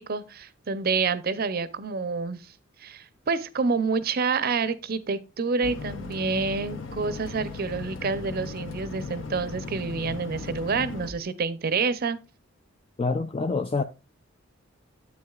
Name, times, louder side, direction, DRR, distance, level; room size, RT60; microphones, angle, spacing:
voice 1, 0.0-2.5 2.8-12.2, right 4 dB, 50° right, 0.6 m, -28 dB
sound 1, 5.6-11.1, left 4 dB, 70° left, 0.9 m, -37 dB
voice 2, 13.0-13.8, left 4 dB, 30° left, 0.4 m, -26 dB
9.5 x 8.2 x 2.3 m
head